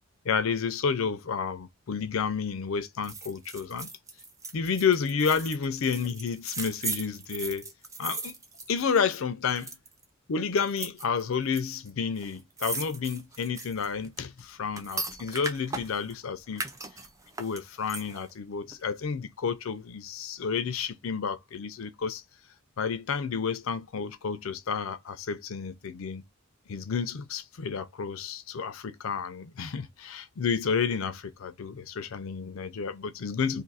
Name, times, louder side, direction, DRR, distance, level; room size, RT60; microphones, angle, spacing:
voice 1, 0.2-3.9 4.5-7.7 8.0-8.3 8.7-9.7 10.3-16.6 17.4-22.2 22.8-26.2 26.7-33.6, left 6 dB, 75° left, 0.5 m, -30 dB
sound 1, 3.0-9.2 9.5-10.0 10.6-11.6 11.9-12.0 12.2-16.1 16.5-18.3 18.7-18.8, right 3 dB, 15° right, 0.4 m, -38 dB
2.6 x 2.5 x 4.0 m
head